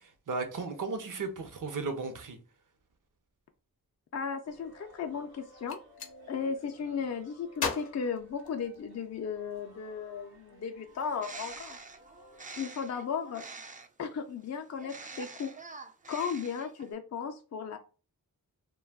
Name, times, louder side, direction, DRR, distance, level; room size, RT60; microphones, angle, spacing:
voice 1, 0.0-2.4, right 4 dB, 60° right, 0.7 m, -35 dB
voice 2, 4.1-5.8 6.3-11.8 12.6-13.4 14.0-15.5 16.1-17.8, left 6 dB, 45° left, 0.4 m, -35 dB
sound 1, 4.4-12.6, right 1 dB, 85° right, 1.0 m, -57 dB
Gunshot gunfire, 5.5-6.1 7.5-9.0, left 5 dB, 85° left, 0.6 m, -37 dB
Bird, 10.9-14.1 14.8-16.9, right 4 dB, 25° right, 0.4 m, -46 dB
2.2 x 2.2 x 3.4 m
cardioid pair, 50°, 37 cm